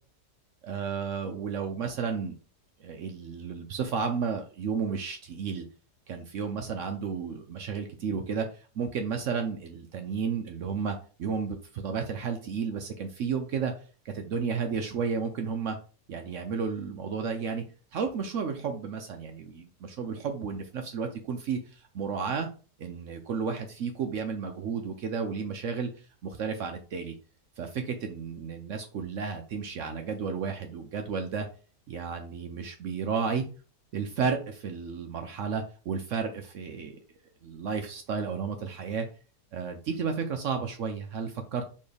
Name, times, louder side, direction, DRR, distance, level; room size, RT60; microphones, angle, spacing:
voice 1, 0.6-2.3 2.8-5.6 6.1-13.7 14.0-15.8 16.1-17.6 17.9-19.7 20.0-22.5 22.8-25.9 26.2-27.1 27.6-31.5 31.9-33.4 33.9-37.0 37.4-39.1 39.5-41.7, right 6 dB, 65° right, 5 dB, 0.7 m, -32 dB
4.3 x 3.1 x 3.3 m, 0.37 s
omnidirectional pair, 1.8 m